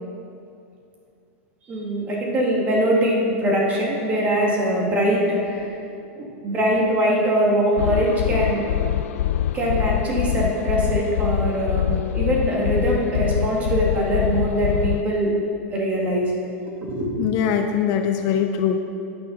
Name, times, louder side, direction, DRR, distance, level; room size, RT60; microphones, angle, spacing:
voice 1, 1.7-5.9 6.1-8.6 9.5-15.3 15.7-16.3 16.8-17.3, right 1 dB, 20° right, -3 dB, 1.9 m, -22 dB
sound 1, 7.8-15.0, left 11 dB, 85° left, 0.3 m, -24 dB
voice 2, 17.2-18.8, left 8 dB, 40° left, 5 dB, 0.5 m, -22 dB
13.5 x 9.4 x 4.0 m, 2.6 s
supercardioid pair, 165°, 7 cm